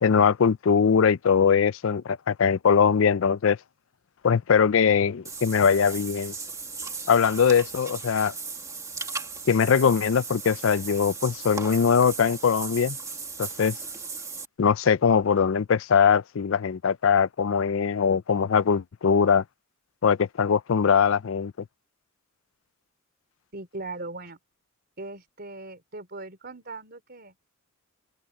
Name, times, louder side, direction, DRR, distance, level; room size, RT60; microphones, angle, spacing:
voice 1, 0.0-3.6 4.2-6.3 7.1-8.3 9.5-13.0 13.4-13.8 14.6-19.4 20.0-21.5, left 6 dB, 65° left, 0.5 m, -21 dB
Water / Bathtub (filling or washing), 5.3-14.5, right 4 dB, 15° right, 1.6 m, -37 dB
voice 2, 23.5-24.4 25.0-27.3, right 2 dB, 50° right, 3.7 m, -39 dB
open air
head